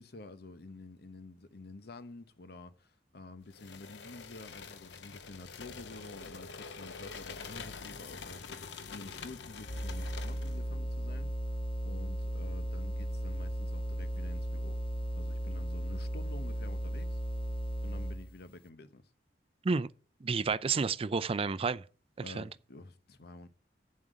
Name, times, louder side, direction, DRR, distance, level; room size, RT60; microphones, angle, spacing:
voice 1, 0.0-11.3 11.8-14.8 15.2-17.2 17.8-19.1 22.2-23.5, left 2 dB, 65° left, 0.9 m, -49 dB
sound 1, 3.5-10.6, left 5 dB, 85° left, 0.8 m, -46 dB
sound 2, 9.6-18.3, equal, 30° left, 0.7 m, -36 dB
voice 2, 20.2-21.8 22.2-22.5, right 4 dB, 35° right, 0.4 m, -30 dB
8.6 x 7.6 x 5.1 m
head